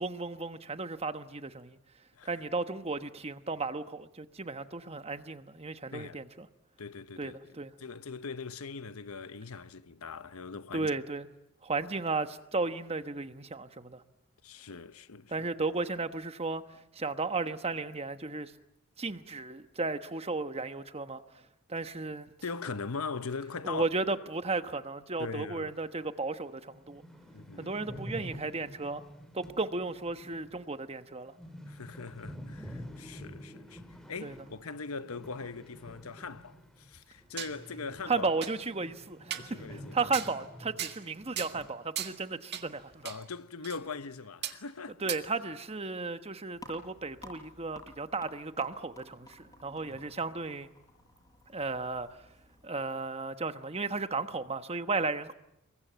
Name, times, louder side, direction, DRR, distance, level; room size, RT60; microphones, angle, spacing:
voice 1, 0.0-1.8 2.2-6.5 7.2-7.7 10.7-11.3 11.6-14.0 15.3-18.5 19.0-21.2 21.7-22.3 23.6-27.0 27.6-29.0 29.3-31.3 34.2-34.3 38.1-43.1 45.0-50.7 51.5-52.1 52.6-55.3, right 3 dB, 30° right, 1.2 m, -34 dB
voice 2, 6.8-7.4 7.8-10.9 14.4-15.5 22.4-23.8 25.2-25.7 27.3-27.7 31.7-33.8 34.1-38.3 39.4-40.1 43.0-45.0 49.9-50.1, left 4 dB, 80° left, 1.0 m, -41 dB
sound 1, 26.0-26.1 26.5-26.6 26.7-37.0 37.2-41.7 42.0-42.1 42.7-43.2, equal, ahead, 4.3 m, -48 dB
sound 2, 36.9-37.6 38.0-38.1 38.4-38.5 39.3-39.5 40.1-40.3 40.8-41.1 41.4-41.6 41.9-42.2 42.5-42.7 43.0-43.2 43.6-43.8 44.4-44.6 45.1-45.2, right 11 dB, 50° right, 1.8 m, -37 dB
sound 3, 46.5-52.7, left 1 dB, 15° left, 6.9 m, -53 dB
27.5 x 23.0 x 9.2 m
head